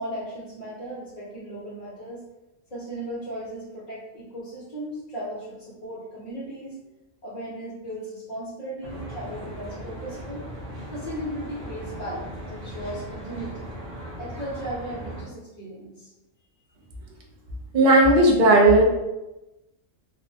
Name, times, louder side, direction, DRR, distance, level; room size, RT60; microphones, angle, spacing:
voice 1, 0.0-2.2 2.7-6.7 7.2-10.5 10.9-13.7 14.2-16.1, right 1 dB, 40° left, -9 dB, 0.7 m, -36 dB
Traffic noise roadway noise, 8.8-15.2, right 1 dB, 75° right, 1.0 m, -38 dB
voice 2, 17.7-18.8, right 2 dB, 60° right, 0 dB, 0.5 m, -15 dB
2.7 x 2.0 x 2.6 m, 0.98 s
omnidirectional pair, 1.3 m